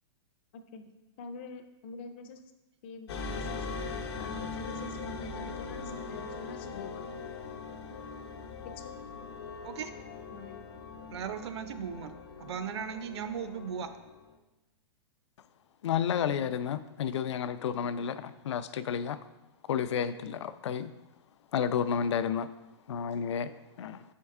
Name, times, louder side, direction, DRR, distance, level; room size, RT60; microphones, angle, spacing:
voice 1, 1.2-2.4 2.8-3.6 4.2-7.0 8.8-8.9 10.3-10.6 13.7-13.9, left 4 dB, 25° left, 7 dB, 0.3 m, -46 dB
sound 1, 3.1-14.4, left 4 dB, 65° left, 0.8 m, -41 dB
voice 2, 11.1-13.9, right 7 dB, 70° right, 10 dB, 0.5 m, -37 dB
voice 3, 15.8-19.2 19.7-20.9 21.5-22.5 22.9-23.5 23.8-24.0, left 8 dB, 90° left, 13 dB, 0.4 m, -31 dB
6.3 x 4.5 x 3.6 m, 1.0 s
supercardioid pair, 175°, 14 cm